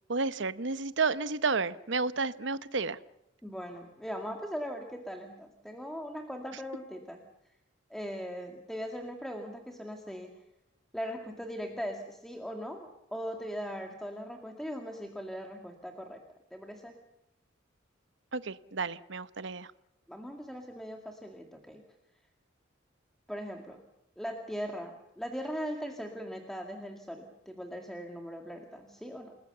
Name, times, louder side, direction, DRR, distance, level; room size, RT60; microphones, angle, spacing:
voice 1, 0.1-3.0 18.3-19.7, right 4 dB, 65° right, 14 dB, 0.9 m, -31 dB
voice 2, 3.4-7.2 7.9-10.3 10.9-16.2 16.5-17.0 20.1-21.8 23.3-23.8 24.2-29.4, equal, ahead, 3 dB, 2.1 m, -39 dB
29.0 x 20.5 x 6.8 m, 0.85 s
head